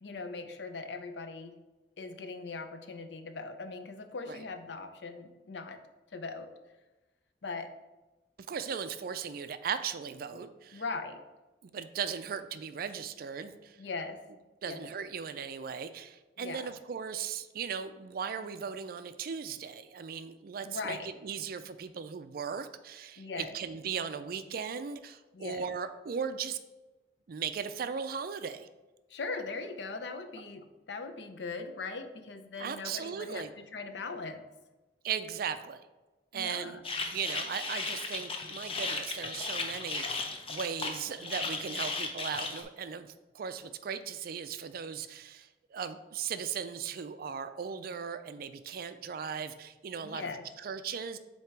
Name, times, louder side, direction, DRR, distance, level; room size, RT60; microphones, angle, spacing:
voice 1, 0.0-1.6 2.0-5.8 6.1-6.5 7.4-7.7 10.3-10.4 10.7-11.2 13.8-14.2 14.6-14.9 16.4-16.8 20.6-21.1 23.2-23.6 25.3-25.7 29.1-33.4 33.7-34.4 36.3-36.8 50.0-50.4, left 4 dB, 75° left, 8 dB, 0.6 m, -40 dB
voice 2, 8.5-10.8 11.6-13.8 14.6-26.6 27.3-28.7 32.6-33.5 35.0-35.9 36.3-36.8 37.1-50.3 50.6-51.2, right 6 dB, 55° right, 11 dB, 0.4 m, -37 dB
sound 1, 36.8-42.6, left 3 dB, 30° left, 0.7 m, -36 dB
7.8 x 2.9 x 4.6 m, 1.1 s
head